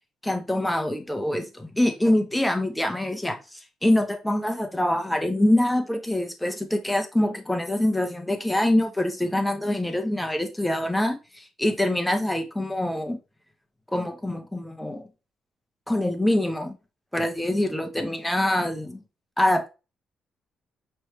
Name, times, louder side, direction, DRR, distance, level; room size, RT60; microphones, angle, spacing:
voice 1, 0.2-13.2 13.9-15.0 15.9-16.7 17.1-19.0 19.4-19.7, left 1 dB, 5° left, 0.9 m, -25 dB
5.2 x 3.3 x 3.0 m
cardioid pair, 90°, 0 cm